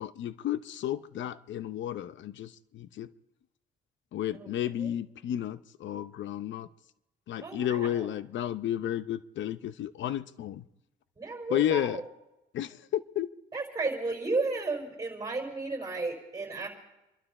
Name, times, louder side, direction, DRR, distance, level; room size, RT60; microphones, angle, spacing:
voice 1, 0.0-3.1 4.1-6.7 7.3-10.6 11.5-12.0 12.5-13.3, left 11 dB, 70° left, 14 dB, 0.8 m, -32 dB
voice 2, 7.4-8.0 11.2-11.9 13.5-16.7, right 3 dB, 20° right, 3 dB, 5.2 m, -33 dB
27.0 x 12.0 x 4.3 m, 0.94 s
cardioid pair, 90°, 20 cm